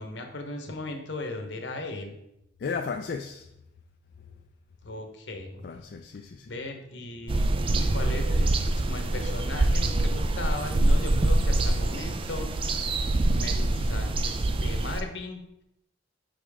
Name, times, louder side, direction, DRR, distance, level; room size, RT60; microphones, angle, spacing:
voice 1, 0.0-2.2 4.8-5.6 6.5-12.5 13.3-15.4, left 2 dB, 75° left, 4 dB, 1.0 m, -37 dB
voice 2, 2.6-3.4 5.6-6.5, left 5 dB, 60° left, 3 dB, 0.4 m, -34 dB
sound 1, 7.3-15.0, right 2 dB, 30° right, 0.4 m, -25 dB
5.8 x 5.1 x 3.5 m, 0.82 s
head